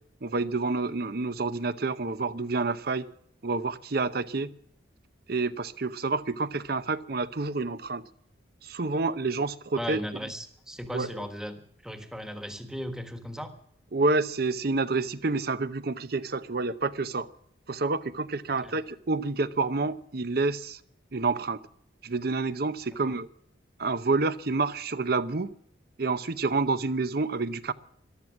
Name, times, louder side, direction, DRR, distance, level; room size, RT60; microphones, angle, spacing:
voice 1, 0.2-3.1 3.4-4.5 5.3-8.0 8.6-10.0 10.9-11.1 13.9-17.3 17.7-20.8 21.1-21.6 22.0-23.3 23.8-25.5 26.0-27.7, right 3 dB, 55° right, 0.8 m, -28 dB
voice 2, 9.7-13.5 18.6-18.8 23.0-23.1, equal, 5° right, 1.4 m, -37 dB
14.5 x 12.5 x 7.2 m
head